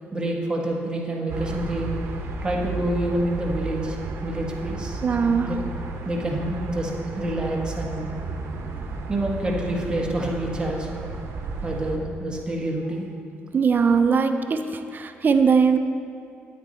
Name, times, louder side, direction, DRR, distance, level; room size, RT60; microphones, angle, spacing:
voice 1, 0.1-1.9 2.4-4.0 4.2-5.6 6.0-8.3 9.1-11.1 11.6-13.1, right 1 dB, 20° right, -1 dB, 1.6 m, -28 dB
sound 1, 1.3-12.0, right 3 dB, 80° right, 0.9 m, -33 dB
voice 2, 5.0-5.5 13.5-15.8, right 5 dB, 45° right, 8 dB, 0.5 m, -20 dB
9.3 x 9.0 x 4.3 m, 2.4 s
cardioid pair, 95°, 4 cm